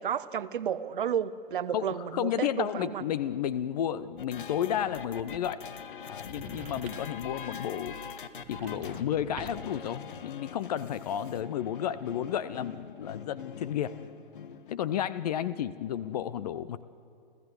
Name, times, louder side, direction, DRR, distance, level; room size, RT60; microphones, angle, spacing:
voice 1, 0.0-3.0, right 8 dB, 60° right, 16 dB, 0.9 m, -32 dB
voice 2, 1.7-5.6 6.1-7.9 8.5-14.0 14.7-16.8, left 10 dB, 45° left, 16 dB, 0.6 m, -32 dB
sound 1, 4.2-14.8, left 6 dB, 60° left, 1.2 m, -44 dB
sound 2, 6.3-7.3 8.3-9.8, right 6 dB, 25° right, 1.4 m, -47 dB
30.0 x 14.5 x 7.9 m, 2.4 s
figure-of-eight pair, 110°, 29 cm